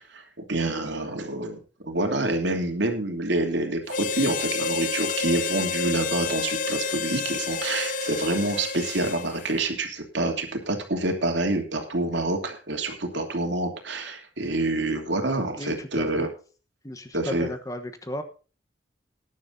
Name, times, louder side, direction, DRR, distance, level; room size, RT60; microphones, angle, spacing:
voice 1, 0.0-16.3 17.1-17.5, right 2 dB, 70° right, 4 dB, 2.9 m, -27 dB
Harmonica, 3.9-9.5, left 5 dB, 45° left, 0.5 m, -29 dB
voice 2, 15.6-16.3 16.8-18.2, left 1 dB, 20° left, 9 dB, 1.1 m, -35 dB
19.5 x 10.5 x 2.7 m, 0.37 s
head